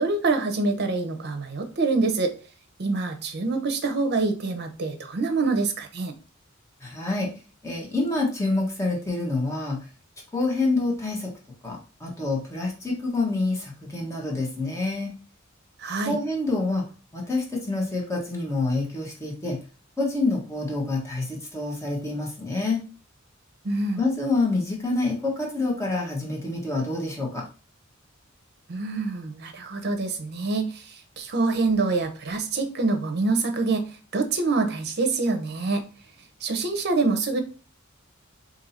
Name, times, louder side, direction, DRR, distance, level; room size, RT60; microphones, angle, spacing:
voice 1, 0.0-2.3 2.8-6.1 15.8-16.2 23.6-24.0 28.7-30.8 31.2-33.9 34.1-35.8 36.4-37.4, right 3 dB, 55° right, 7 dB, 0.6 m, -25 dB
voice 2, 6.8-7.3 7.6-9.8 10.3-11.3 11.6-15.1 16.1-16.8 17.1-19.6 20.0-22.8 24.0-27.4, left 2 dB, 15° left, -2 dB, 1.0 m, -27 dB
2.7 x 2.7 x 4.1 m, 0.36 s
head